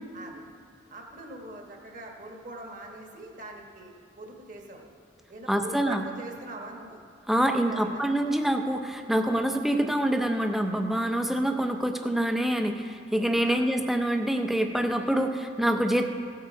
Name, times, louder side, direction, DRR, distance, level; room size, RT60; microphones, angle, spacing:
voice 1, 0.1-0.4 0.9-4.9 5.3-7.0 7.5-8.1 13.4-13.6, right 2 dB, 45° right, 1 dB, 1.4 m, -42 dB
voice 2, 5.5-6.0 7.3-16.1, right 1 dB, ahead, 5 dB, 0.6 m, -26 dB
16.5 x 7.7 x 4.6 m, 2.4 s
head